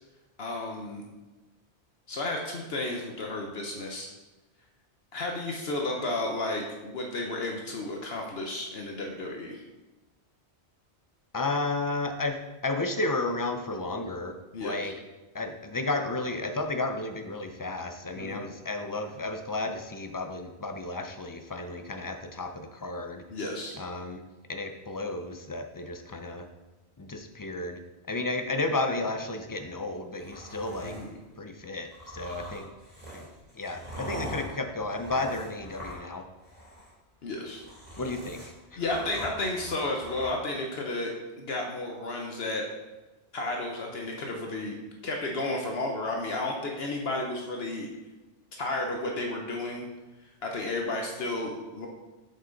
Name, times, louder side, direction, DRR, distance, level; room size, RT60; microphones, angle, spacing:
voice 1, 0.4-1.0 2.1-4.1 5.1-9.6 14.5-14.9 18.1-18.5 23.3-23.8 30.8-31.1 37.2-37.6 38.8-41.1 41.4-42.6 43.3-44.7 45.0-47.9 48.5-49.9 50.4-51.9, left 2 dB, 65° left, 1 dB, 1.1 m, -32 dB
voice 2, 11.3-12.4 12.6-14.9 15.3-23.2 23.8-24.2 24.5-26.5 27.0-27.8 28.1-30.9 31.4-32.7 33.1-33.3 33.6-36.2 38.0-38.4 38.7-38.8, left 2 dB, 30° left, 5 dB, 0.3 m, -32 dB
sound 1, 30.2-31.1 31.9-36.2 36.4-36.9 37.3-40.3, equal, 40° right, 2.7 m, -42 dB
7.4 x 5.6 x 3.9 m, 1.1 s
omnidirectional pair, 1.1 m